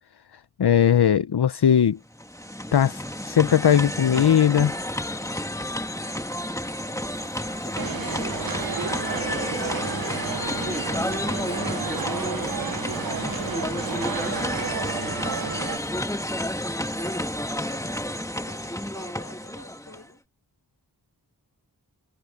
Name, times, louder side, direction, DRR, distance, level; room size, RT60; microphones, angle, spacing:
voice 1, 0.6-2.0 2.7-4.7, left 9 dB, 75° left, 0.6 m, -19 dB
sound 1, 2.1-20.1, left 1 dB, 10° left, 1.5 m, -30 dB
sound 2, 7.1-16.0, right 1 dB, 15° right, 6.8 m, -48 dB
sound 3, 7.8-15.8, right 6 dB, 60° right, 0.7 m, -32 dB
voice 2, 11.0-20.2, left 2 dB, 45° left, 5.4 m, -51 dB
wide cardioid pair, 45°, 40 cm